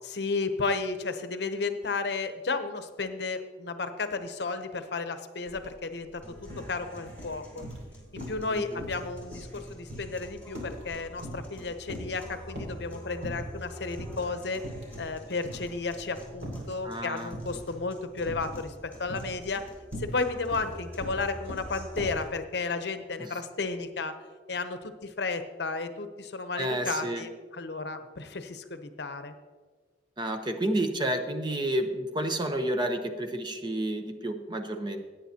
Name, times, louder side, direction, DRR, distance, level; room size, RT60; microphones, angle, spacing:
voice 1, 0.0-7.7 8.1-14.6 15.0-19.7 20.0-24.2 24.5-29.3, left 3 dB, 60° left, 9 dB, 0.8 m, -33 dB
sound 1, 5.5-5.7 6.0-6.7 7.1-7.9 8.2-8.5 8.8-11.6 11.9-12.8 13.2-13.6 14.0-14.2 14.6-15.1 15.4-16.8 17.3-17.7 18.3-18.7 19.0-22.3, equal, 65° right, 2.5 m, -40 dB
sound 2, 6.2-22.2, equal, 10° left, 2.6 m, -47 dB
voice 2, 8.5-8.8 16.8-17.3 23.2-23.3 26.6-27.3 30.2-35.1, right 1 dB, 25° right, 6 dB, 0.8 m, -30 dB
16.5 x 9.0 x 2.8 m, 1.5 s
head